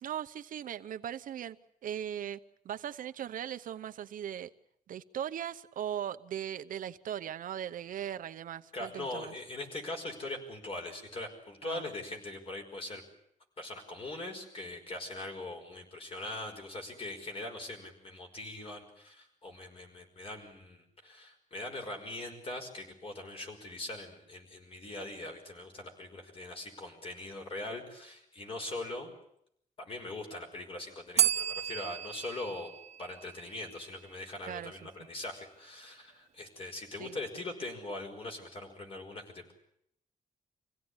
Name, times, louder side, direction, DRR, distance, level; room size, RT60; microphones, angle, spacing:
voice 1, 0.0-2.4 2.6-4.5 4.9-9.3 11.6-11.8 34.5-34.9 37.0-37.2, right 10 dB, 75° right, 9 dB, 0.9 m, -39 dB
voice 2, 8.7-13.0 13.6-29.1 29.8-32.7 33.0-39.5, left 2 dB, 40° left, 3 dB, 5.5 m, -41 dB
Bell, 31.2-34.0, right 11 dB, 50° right, 1.1 m, -32 dB
26.0 x 17.0 x 9.8 m, 0.74 s
wide cardioid pair, 160°, 14 cm